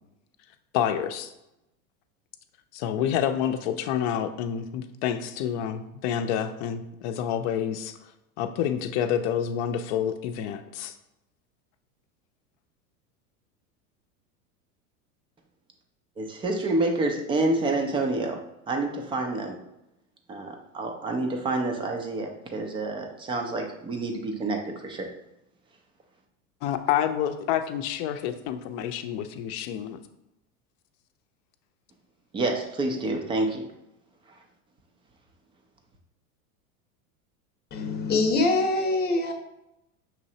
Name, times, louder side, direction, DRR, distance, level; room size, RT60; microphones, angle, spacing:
voice 1, 0.7-1.3 2.7-8.0 8.4-10.9 26.6-30.0, left 9 dB, 50° left, 9 dB, 0.6 m, -28 dB
voice 2, 16.2-19.6 20.3-25.1 32.3-33.7, right 2 dB, 15° right, 3 dB, 0.3 m, -28 dB
voice 3, 37.7-39.3, left 2 dB, 20° left, 4 dB, 0.8 m, -24 dB
6.1 x 3.1 x 2.7 m, 0.90 s
hypercardioid pair, 110°, 44 cm